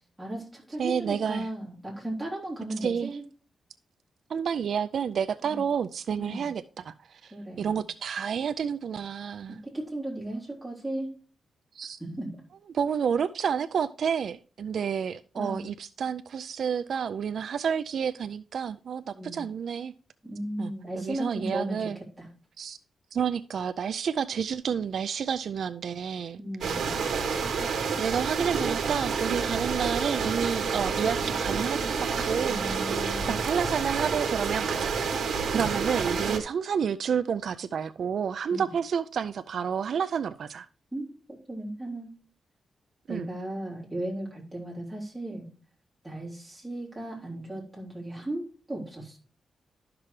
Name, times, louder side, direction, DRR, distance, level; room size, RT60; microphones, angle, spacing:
voice 1, 0.2-3.2 5.4-5.6 6.2-6.5 7.3-7.8 9.5-11.1 12.0-12.3 15.4-15.6 19.1-19.4 20.2-22.3 26.4-26.9 32.5-33.4 35.5-35.7 38.5-38.7 40.9-41.1 41.5-42.1 43.1-45.5 46.0-49.2, right 1 dB, 5° right, 3.2 m, -36 dB
voice 2, 0.8-1.5 2.8-3.1 4.3-9.6 11.8-12.0 12.7-19.9 20.6-20.7 21.0-22.0 22.6-22.8 23.1-26.7 28.0-32.6 33.3-35.0 35.5-40.7 43.1-43.3, right 7 dB, 60° right, 0.3 m, -30 dB
sound 1, 26.6-36.4, right 5 dB, 75° right, 1.3 m, -29 dB
12.0 x 6.0 x 3.2 m
wide cardioid pair, 170°, 0 cm